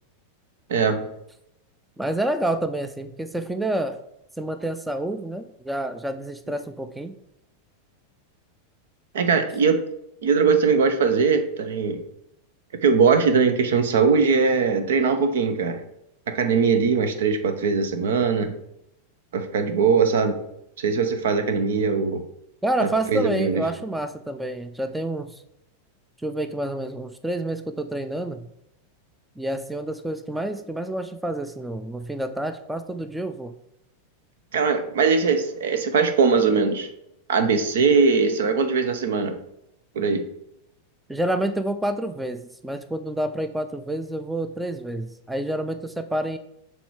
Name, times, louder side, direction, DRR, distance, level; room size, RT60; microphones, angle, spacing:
voice 1, 0.7-1.1 9.1-9.8 10.2-12.0 12.8-15.8 16.3-18.5 19.3-20.4 20.8-22.2 22.8-23.6 34.5-36.9 37.3-39.3 39.9-40.2, right 5 dB, 65° right, 8 dB, 0.8 m, -21 dB
voice 2, 2.0-4.0 4.4-7.2 22.6-25.4 26.2-28.5 29.4-33.5 41.1-46.4, right 1 dB, 5° right, 9 dB, 0.4 m, -28 dB
7.0 x 3.4 x 4.7 m, 0.78 s
figure-of-eight pair, 90°, 0 cm